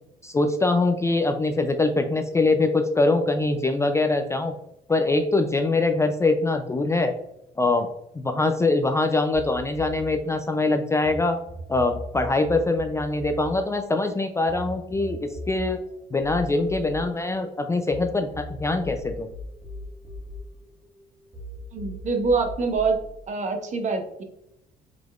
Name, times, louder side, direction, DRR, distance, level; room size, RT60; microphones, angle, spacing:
voice 1, 0.2-4.6 4.9-7.1 7.6-7.9 8.1-11.4 11.7-15.8 16.1-19.3, left 2 dB, 15° left, 6 dB, 0.3 m, -23 dB
sound 1, 9.3-11.2 11.5-18.0 18.3-21.0 21.3-23.0, left 1 dB, 30° right, 1.5 m, -39 dB
voice 2, 21.7-23.0 23.3-24.2, right 4 dB, 45° right, 4 dB, 0.9 m, -25 dB
4.9 x 3.8 x 2.4 m, 0.82 s
cardioid pair, 110°, 17 cm